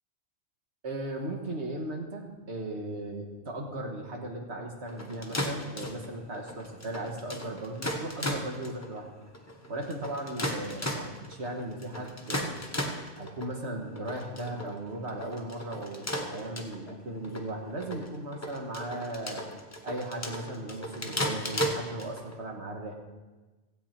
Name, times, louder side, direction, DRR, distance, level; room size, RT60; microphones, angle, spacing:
voice 1, 0.8-9.1 9.7-12.6 13.2-19.4 19.8-22.9, right 1 dB, 60° right, 1 dB, 1.8 m, -37 dB
sound 1, 4.9-22.3, equal, 15° left, 1.0 m, -36 dB
16.5 x 8.4 x 4.4 m, 1.2 s
omnidirectional pair, 1.3 m